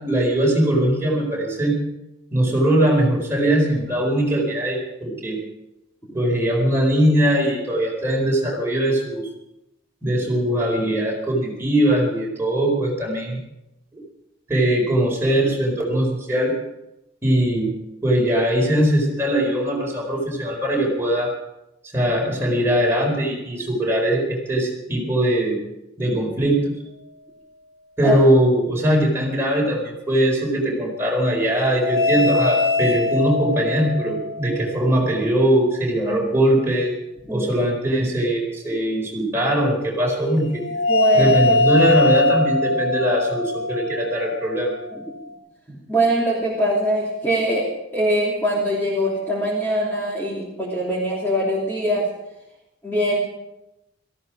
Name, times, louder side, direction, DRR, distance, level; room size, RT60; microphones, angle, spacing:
voice 1, 0.0-1.8 2.3-5.4 6.1-9.3 10.0-13.4 14.5-16.5 17.2-17.7 18.0-21.3 21.9-25.6 26.0-26.7 28.0-36.9 37.3-40.6 41.1-44.7, right 1 dB, 10° right, -2 dB, 4.6 m, -21 dB
sound 1, 31.7-35.1 40.5-45.3, left 2 dB, 65° left, 1.9 m, -22 dB
voice 2, 40.9-41.6 44.9-45.0 45.7-47.6 47.9-52.1 52.8-53.2, right 1 dB, 10° left, -5 dB, 3.0 m, -22 dB
17.5 x 15.0 x 4.9 m, 0.90 s
head